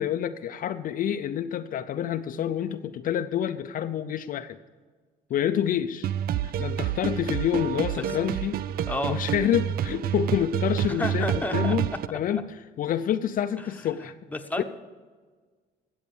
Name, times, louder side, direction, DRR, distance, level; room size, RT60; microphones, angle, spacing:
voice 1, 0.0-4.6 5.3-6.1 6.4-8.6 9.1-11.8 12.1-14.1 14.6-14.7, left 9 dB, 55° left, 9 dB, 0.5 m, -28 dB
sound 1, 6.0-12.1, right 10 dB, 60° right, 0.5 m, -28 dB
voice 2, 10.9-11.8 13.6-13.7 14.0-14.6, left 2 dB, 10° left, 5 dB, 1.1 m, -31 dB
13.5 x 8.1 x 7.1 m, 1.5 s
cardioid pair, 110°, 17 cm